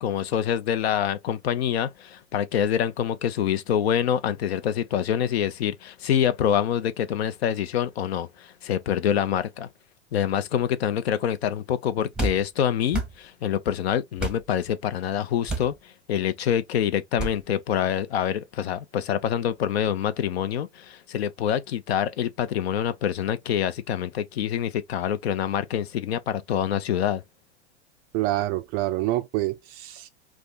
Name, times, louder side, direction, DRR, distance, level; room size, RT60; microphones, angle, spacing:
voice 1, 0.0-9.7 10.1-27.2, left 9 dB, 60° left, 0.6 m, -26 dB
sound 1, 12.1-12.4 12.9-13.1 14.2-14.4 15.5-15.7 17.2-17.4, right 3 dB, ahead, 0.8 m, -29 dB
voice 2, 28.1-30.1, right 16 dB, 30° right, 0.3 m, -27 dB
2.6 x 2.4 x 3.9 m
figure-of-eight pair, 90°, 35 cm